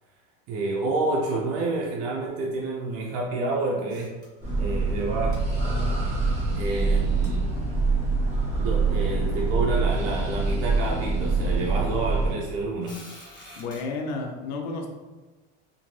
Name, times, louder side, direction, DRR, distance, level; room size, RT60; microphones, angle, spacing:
voice 1, 0.5-4.2 4.6-5.5 6.6-7.4 8.6-13.0, right 2 dB, 50° right, -3 dB, 0.5 m, -29 dB
sound 1, 3.9-4.7 5.0-5.1 5.3-5.4 7.2-7.3 8.1-8.2 9.0-9.1 9.3-9.5 10.1-10.5 11.3-11.4 12.8-13.8, left 1 dB, 15° left, 0.9 m, -47 dB
sound 2, 4.4-12.3, right 3 dB, 20° right, 1.0 m, -25 dB
voice 2, 13.6-14.9, left 3 dB, 60° left, 1 dB, 0.6 m, -31 dB
2.5 x 2.4 x 3.1 m, 1.2 s
supercardioid pair, 135°, 30 cm